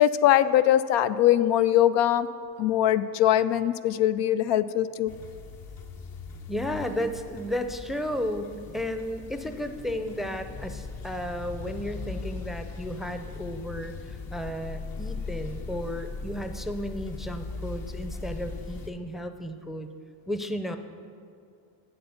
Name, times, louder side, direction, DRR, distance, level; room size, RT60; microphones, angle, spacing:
voice 1, 0.0-2.3 2.6-5.1, left 12 dB, 75° left, 12 dB, 0.5 m, -22 dB
sound 1, 5.1-18.9, left 4 dB, 55° left, 1.1 m, -39 dB
voice 2, 6.5-19.9 20.3-20.8, equal, ahead, 7 dB, 0.5 m, -33 dB
7.8 x 7.8 x 7.0 m, 2.3 s
cardioid pair, 90°, 43 cm